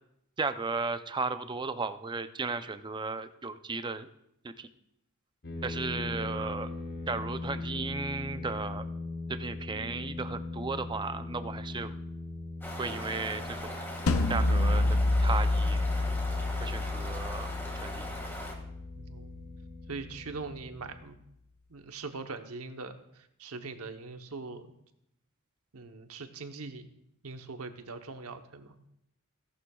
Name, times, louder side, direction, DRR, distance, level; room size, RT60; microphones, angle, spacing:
voice 1, 0.4-4.1 4.4-4.7 5.6-6.7 7.1-8.9 9.3-11.9 12.8-13.8 14.3-15.8 16.6-18.2, right 4 dB, 20° right, 10 dB, 0.5 m, -35 dB
sound 1, 5.4-21.0, left 2 dB, 50° left, 1.3 m, -40 dB
sound 2, 12.6-18.5, equal, 10° left, 1.8 m, -41 dB
sound 3, 14.1-19.1, left 2 dB, 70° left, 0.6 m, -28 dB
voice 2, 18.9-19.5 19.9-21.2 21.7-23.0 23.4-24.7 25.7-26.9 27.2-28.7, right 4 dB, 75° right, 7 dB, 0.9 m, -41 dB
16.5 x 11.0 x 2.3 m, 0.77 s
head